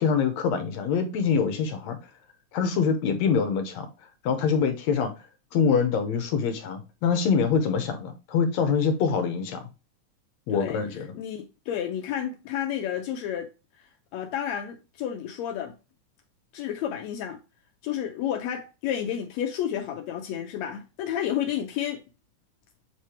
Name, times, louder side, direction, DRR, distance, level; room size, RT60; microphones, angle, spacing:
voice 1, 0.0-2.0 2.5-3.9 4.2-5.1 5.5-9.6 10.5-11.1, left 6 dB, 70° left, 1.8 m, -25 dB
voice 2, 10.5-13.5 14.1-15.7 16.5-17.4 17.8-22.0, left 10 dB, 90° left, 1.5 m, -31 dB
7.6 x 3.2 x 4.3 m
omnidirectional pair, 3.8 m